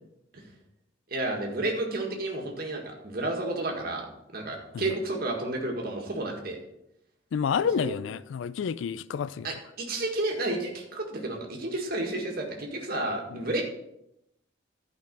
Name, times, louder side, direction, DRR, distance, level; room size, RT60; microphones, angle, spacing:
voice 1, 1.1-4.1 4.3-6.6 7.7-7.9 9.4-13.6, right 2 dB, 50° right, 1.8 m, -31 dB
voice 2, 7.3-9.5 13.3-13.4, left 7 dB, 70° left, 0.3 m, -29 dB
11.5 x 5.2 x 5.3 m
head